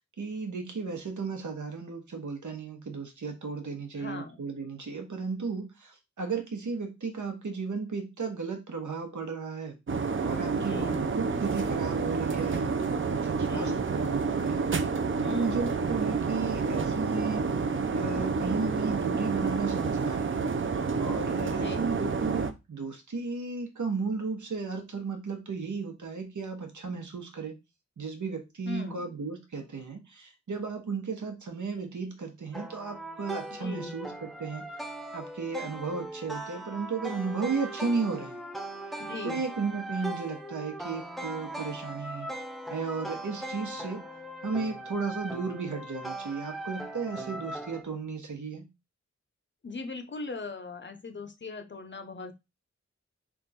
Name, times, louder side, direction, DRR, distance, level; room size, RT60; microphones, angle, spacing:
voice 1, 0.2-9.8 10.2-14.9 15.3-17.5 17.9-20.4 21.0-27.5 28.0-34.7 35.1-38.4 39.2-42.3 42.7-44.0 44.4-48.7, right 4 dB, 85° right, 4 dB, 1.1 m, -34 dB
voice 2, 4.0-4.4 10.5-11.0 13.4-13.8 15.2-15.7 21.5-22.0 28.7-29.1 33.5-33.9 39.0-39.4 49.6-52.3, left 3 dB, 40° left, 7 dB, 0.7 m, -39 dB
sound 1, 9.9-22.5, right 4 dB, 45° right, 0.5 m, -29 dB
sound 2, 32.5-47.8, right 1 dB, ahead, 0.6 m, -39 dB
3.5 x 2.4 x 4.1 m, 0.23 s
wide cardioid pair, 80°, 29 cm